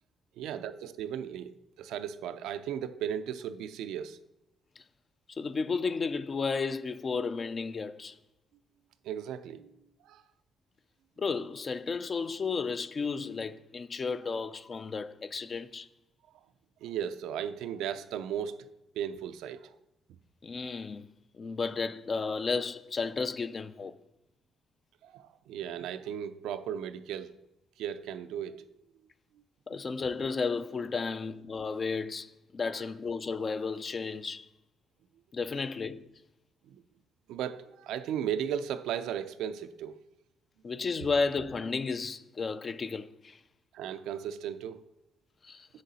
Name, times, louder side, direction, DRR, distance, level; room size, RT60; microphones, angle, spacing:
voice 1, 0.4-4.2 9.0-9.7 10.1-10.2 16.8-18.7 18.9-19.7 25.0-27.3 27.8-28.6 36.7-36.8 37.3-40.0 43.7-44.8, right 9 dB, 90° right, 0.4 m, -36 dB
voice 2, 5.3-8.2 11.2-15.9 20.4-23.9 29.7-34.5 35.3-36.1 40.6-43.4 45.4-45.7, left 4 dB, 40° left, 0.4 m, -33 dB
6.6 x 6.4 x 4.1 m
cardioid pair, 90°, 0 cm